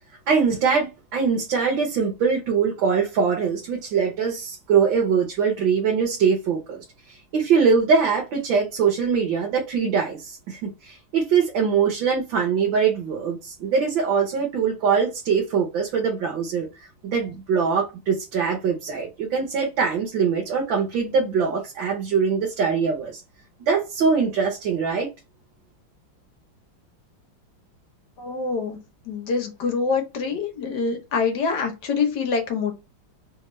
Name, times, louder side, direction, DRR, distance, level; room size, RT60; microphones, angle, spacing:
voice 1, 0.3-23.2 23.7-25.1, right 6 dB, 75° right, 1.6 m, -22 dB
voice 2, 28.2-28.8 29.1-32.7, left 5 dB, 65° left, 1.4 m, -25 dB
3.5 x 3.3 x 3.0 m
omnidirectional pair, 2.2 m